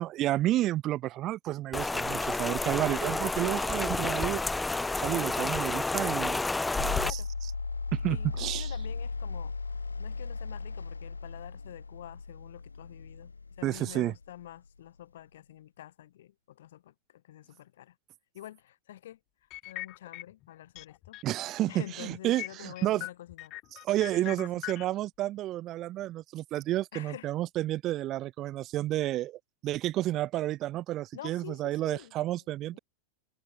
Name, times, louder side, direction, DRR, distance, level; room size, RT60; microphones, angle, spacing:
voice 1, 0.0-4.4 5.0-6.4 7.1-7.2 7.9-8.7 13.6-14.1 21.2-23.1 23.8-32.8, right 14 dB, 35° right, 4.9 m, -31 dB
Rain, 1.7-7.1, left 2 dB, 10° left, 1.9 m, -30 dB
sound 1, 6.8-14.9, left 4 dB, 80° left, 1.0 m, -37 dB
voice 2, 8.1-13.3 13.6-17.9 18.3-19.2 19.7-21.2 21.7-23.5 24.2-24.5 26.9-27.3 31.1-32.2 32.7-32.8, left 13 dB, 60° left, 5.8 m, -47 dB
sound 2, 19.5-20.5 20.7-21.5 21.8-21.9 22.4-24.8, left 19 dB, 40° left, 2.2 m, -40 dB
figure-of-eight pair, 90°, 0 cm